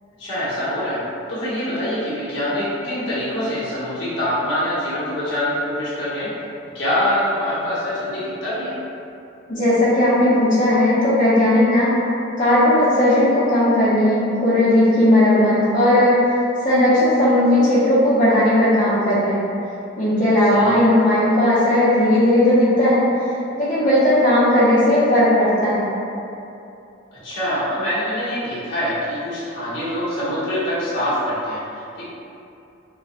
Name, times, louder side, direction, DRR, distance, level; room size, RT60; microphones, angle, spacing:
voice 1, 0.2-1.0 1.3-6.3 6.7-8.7 20.4-20.8 27.2-32.0, left 1 dB, 60° left, -11 dB, 1.1 m, -24 dB
voice 2, 9.5-11.9 12.4-16.2 16.6-19.5 20.0-23.0 23.6-25.9, left 1 dB, 40° left, -14 dB, 0.6 m, -16 dB
3.9 x 2.1 x 2.4 m, 2.7 s
head